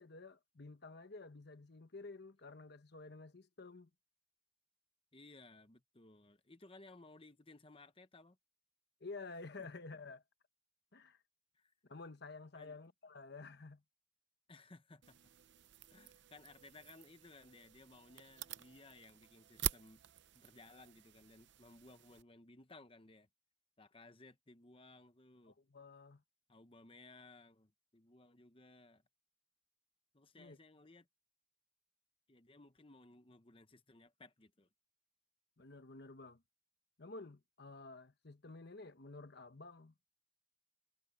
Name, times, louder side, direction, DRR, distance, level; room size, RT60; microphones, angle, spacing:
voice 1, 0.0-3.9 9.0-10.2 10.9-11.2 11.9-13.8 25.5-26.2 30.4-30.6 35.6-36.4 37.0-39.9, left 3 dB, 55° left, 1.1 m, -51 dB
voice 2, 5.1-8.4 11.5-11.7 12.5-12.8 14.5-15.2 15.9-20.0 20.3-23.3 23.8-25.6 26.5-29.0 30.1-31.1 32.3-34.7, left 2 dB, 25° left, 1.0 m, -60 dB
sound 1, 15.0-22.2, right 11 dB, 60° right, 0.6 m, -47 dB
head